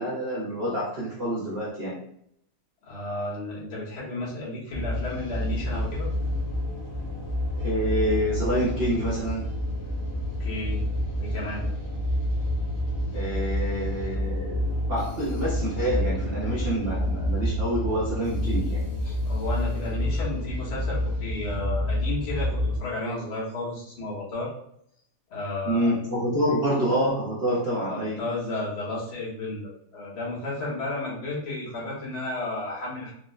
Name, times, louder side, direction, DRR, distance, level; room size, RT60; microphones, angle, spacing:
voice 1, 0.0-2.0 7.6-9.5 13.1-19.1 25.6-28.2, equal, 70° right, -8 dB, 0.5 m, -27 dB
voice 2, 2.8-6.1 10.4-10.8 11.2-11.7 19.2-24.5 25.3-26.5 27.9-33.1, left 2 dB, 75° left, -6 dB, 2.0 m, -33 dB
sound 1, 4.7-22.8, left 1 dB, 55° left, 1.5 m, -28 dB
4.6 x 2.0 x 2.3 m, 0.69 s
omnidirectional pair, 2.4 m